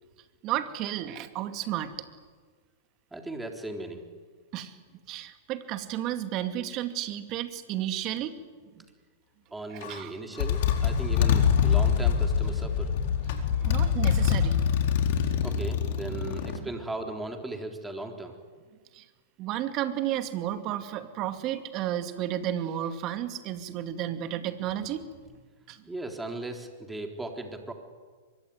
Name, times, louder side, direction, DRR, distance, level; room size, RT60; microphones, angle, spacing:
voice 1, 0.4-1.9 4.5-4.7 5.1-8.4 8.8-8.9 9.7-10.2 13.3-14.6 16.5-16.7 18.9-19.0 19.4-25.1 25.7-25.8, right 12 dB, 40° right, 8 dB, 2.5 m, -32 dB
voice 2, 3.1-4.1 9.5-13.0 15.4-18.4 25.9-27.7, right 2 dB, 5° right, 3 dB, 3.9 m, -37 dB
Motorcycle, 9.8-10.0 10.4-16.6, left 7 dB, 60° left, 4.2 m, -25 dB
24.0 x 23.0 x 9.8 m, 1.5 s
hypercardioid pair, 115°, 0 cm